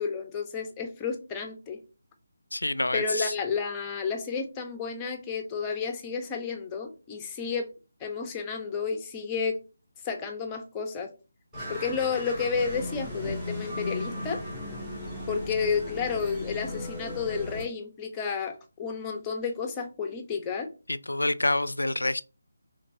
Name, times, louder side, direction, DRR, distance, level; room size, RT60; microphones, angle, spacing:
voice 1, 0.0-1.8 2.9-7.7 8.0-9.6 10.0-11.1 11.7-14.4 15.3-20.7, left 5 dB, 15° left, 0.7 m, -31 dB
voice 2, 2.5-3.3 21.1-22.2, left 2 dB, 90° left, 0.4 m, -27 dB
sound 1, 11.5-17.6, left 1 dB, 5° right, 2.4 m, -36 dB
4.4 x 3.7 x 2.6 m
figure-of-eight pair, 160°, 0 cm